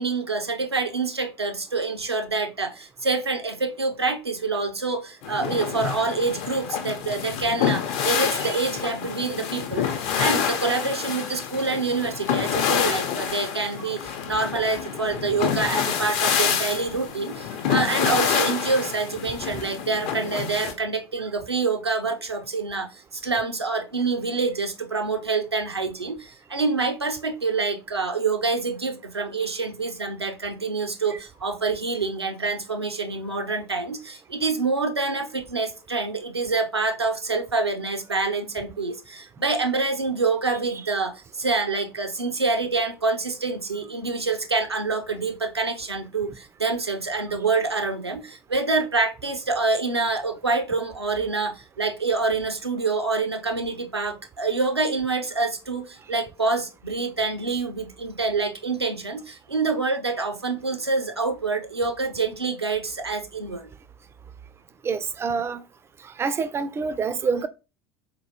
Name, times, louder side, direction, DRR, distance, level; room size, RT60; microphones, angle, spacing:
voice 1, 0.0-63.7, right 3 dB, 85° right, 0.5 m, -26 dB
sound 1, 5.2-20.7, left 8 dB, 50° left, 0.6 m, -27 dB
voice 2, 64.8-65.6 66.0-67.5, right 5 dB, 20° right, 0.3 m, -27 dB
4.0 x 2.9 x 2.7 m
figure-of-eight pair, 70°, 13 cm